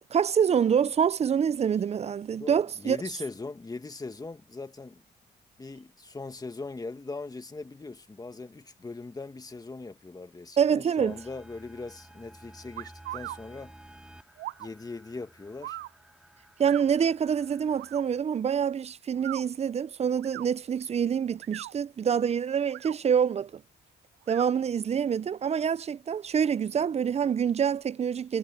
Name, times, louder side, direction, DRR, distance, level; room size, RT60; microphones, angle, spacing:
voice 1, 0.1-3.0 10.6-11.2 16.6-23.6 24.3-28.4, right 7 dB, 35° right, 0.5 m, -26 dB
voice 2, 2.4-5.0 5.6-13.7 14.6-15.8, left 3 dB, 20° left, 1.9 m, -40 dB
sound 1, 11.0-18.2, right 1 dB, 5° right, 2.3 m, -53 dB
sound 2, 12.8-13.4 14.4-14.7 15.6-15.9 16.6-16.9 17.7-18.0 19.1-19.4 20.2-20.5 21.3-21.7 22.6-23.0 24.2-24.5, right 17 dB, 85° right, 0.4 m, -39 dB
cardioid pair, 90°, 18 cm